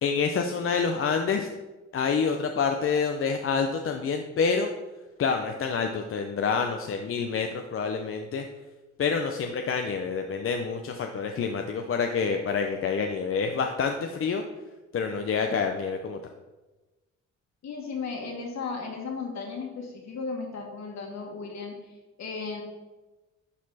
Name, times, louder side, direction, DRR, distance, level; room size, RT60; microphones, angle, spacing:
voice 1, 0.0-1.5 1.9-4.7 5.2-8.4 9.0-14.4 14.9-16.2, left 5 dB, 45° left, 4 dB, 0.7 m, -27 dB
voice 2, 17.6-22.6, left 4 dB, 65° left, 1 dB, 2.1 m, -35 dB
11.0 x 4.2 x 4.2 m, 1.2 s
cardioid pair, 90°, 30 cm